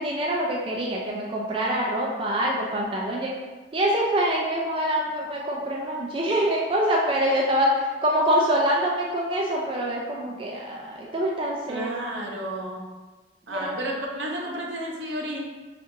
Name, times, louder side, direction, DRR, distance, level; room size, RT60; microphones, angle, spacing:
voice 1, 0.0-3.3 3.7-11.9 13.5-13.8, equal, 30° right, -2 dB, 0.3 m, -25 dB
voice 2, 11.7-12.8 13.5-15.4, right 1 dB, 80° right, -1 dB, 0.7 m, -32 dB
5.0 x 2.4 x 2.6 m, 1.3 s
head